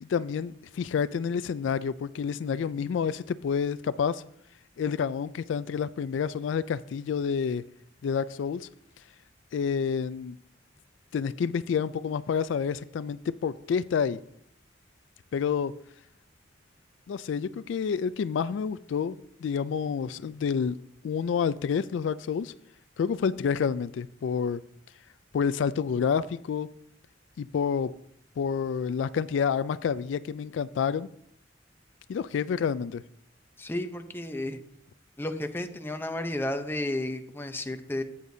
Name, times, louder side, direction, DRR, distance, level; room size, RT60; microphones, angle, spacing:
voice 1, 0.0-4.2 4.8-7.6 8.0-8.7 9.5-10.3 11.1-14.2 15.3-15.8 17.1-20.8 21.0-22.5 23.0-24.6 25.3-26.7 27.4-27.9 28.4-31.1 32.1-33.0, left 6 dB, 75° left, 0.3 m, -29 dB
voice 2, 33.6-34.6 35.2-38.0, left 1 dB, 10° left, 0.7 m, -32 dB
14.0 x 8.4 x 2.7 m
head